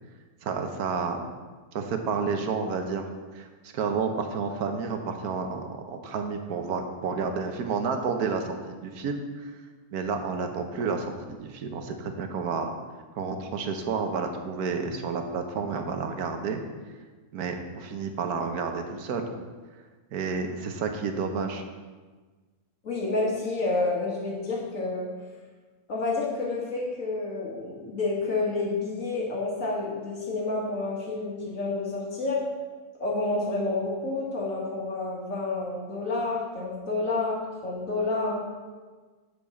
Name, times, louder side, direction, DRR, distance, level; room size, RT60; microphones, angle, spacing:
voice 1, 0.4-1.3 1.7-3.1 3.3-3.5 3.7-9.5 9.9-12.7 13.2-16.6 17.3-19.3 20.1-21.6, right 5 dB, 90° right, 5 dB, 1.4 m, -30 dB
voice 2, 22.8-25.1 25.9-32.4 33.0-38.4, left 3 dB, 60° left, -3 dB, 2.2 m, -29 dB
7.4 x 5.0 x 7.1 m, 1.4 s
omnidirectional pair, 1.5 m